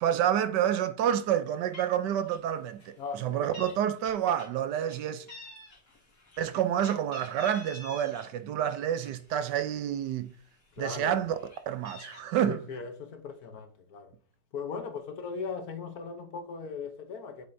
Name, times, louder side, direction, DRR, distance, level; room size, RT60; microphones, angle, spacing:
voice 1, 0.0-5.3 6.4-10.3 10.8-11.4 11.7-12.6, right 10 dB, 75° right, 1.1 m, -28 dB
Meow, 1.4-1.5 1.7-2.0 2.3-2.5 2.8-3.7 4.0-5.0 5.3-8.3 8.7-9.8 10.3-10.4 10.7-12.2, left 2 dB, 40° left, 2.9 m, -48 dB
voice 2, 3.0-3.7 10.8-11.2 12.4-14.1 14.5-17.5, left 5 dB, 60° left, 1.2 m, -38 dB
7.7 x 6.8 x 2.6 m
omnidirectional pair, 2.0 m